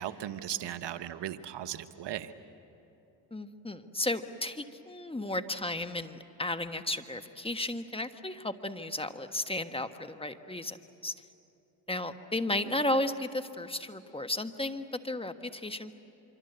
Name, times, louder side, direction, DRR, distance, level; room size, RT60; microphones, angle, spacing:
voice 1, 0.0-2.3, right 11 dB, 60° right, 10 dB, 1.2 m, -37 dB
voice 2, 3.3-10.8 11.0-11.1 11.9-15.9, left 1 dB, 10° left, 9 dB, 1.4 m, -34 dB
26.0 x 24.5 x 8.0 m, 2.9 s
supercardioid pair, 65°, 47 cm